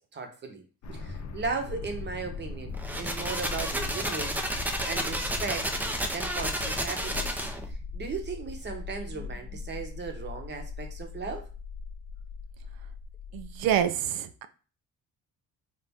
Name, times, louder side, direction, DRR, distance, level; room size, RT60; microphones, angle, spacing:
voice 1, 0.1-0.6 0.9-11.4, right 4 dB, 30° right, 0.8 m, -37 dB
sound 1, 0.8-13.8, left 4 dB, 55° left, 0.6 m, -40 dB
sound 2, 2.7-7.7, right 1 dB, 5° right, 0.3 m, -31 dB
voice 2, 13.3-14.5, right 9 dB, 80° right, 0.5 m, -27 dB
4.1 x 2.5 x 3.4 m
cardioid pair, 145°, 34 cm